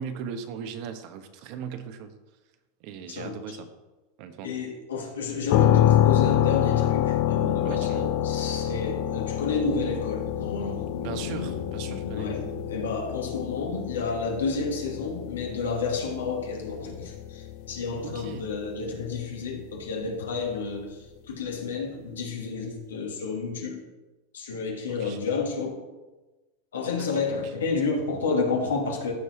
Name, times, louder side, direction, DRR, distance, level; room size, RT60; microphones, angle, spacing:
voice 1, 0.0-2.2 2.8-3.7 4.2-4.5 7.6-8.1 11.0-12.3 18.0-18.5 24.9-25.2 26.9-27.2, right 7 dB, 55° right, 8 dB, 1.0 m, -38 dB
voice 2, 4.4-21.0 21.3-23.8 24.3-25.8 26.7-29.1, left 4 dB, 85° left, 1 dB, 1.9 m, -30 dB
sound 1, 5.5-19.2, left 12 dB, 55° left, 0.6 m, -27 dB
14.0 x 4.8 x 4.3 m, 1.2 s
hypercardioid pair, 105°, 0 cm